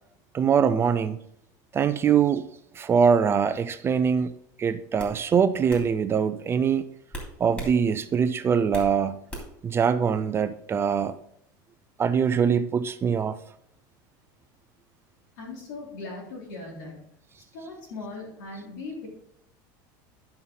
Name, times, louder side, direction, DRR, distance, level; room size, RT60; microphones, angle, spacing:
voice 1, 0.3-1.2 1.7-2.5 2.7-4.3 4.6-6.8 7.4-9.2 9.6-11.2 12.0-13.4, right 7 dB, 25° right, 0.4 m, -23 dB
sound 1, 4.2-4.4 5.0-5.2 5.7-5.9 7.1-7.8 8.1-8.9 9.3-9.7, right 1 dB, 15° left, 3.0 m, -37 dB
voice 2, 15.4-17.0 17.5-19.1, left 3 dB, 80° left, 3.5 m, -39 dB
11.0 x 5.8 x 3.9 m
supercardioid pair, 135°, 10 cm